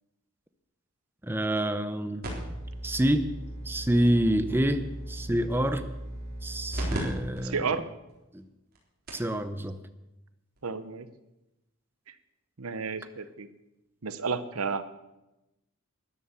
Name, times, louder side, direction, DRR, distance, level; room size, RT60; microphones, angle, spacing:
voice 1, 1.2-2.2 2.8-3.3 3.7-5.9 6.4-7.6 8.3-8.4 9.1-9.8, right 1 dB, 10° right, 9 dB, 0.6 m, -27 dB
sound 1, 2.2-7.0 7.4-7.5 8.1-8.2 8.8-8.9 9.1-9.3 10.6-10.7, right 1 dB, 45° right, 3.8 m, -36 dB
voice 2, 7.4-7.8 10.6-11.1 12.6-13.5 14.0-14.9, right 5 dB, 75° right, 12 dB, 0.9 m, -31 dB
13.5 x 11.0 x 7.0 m, 0.96 s
head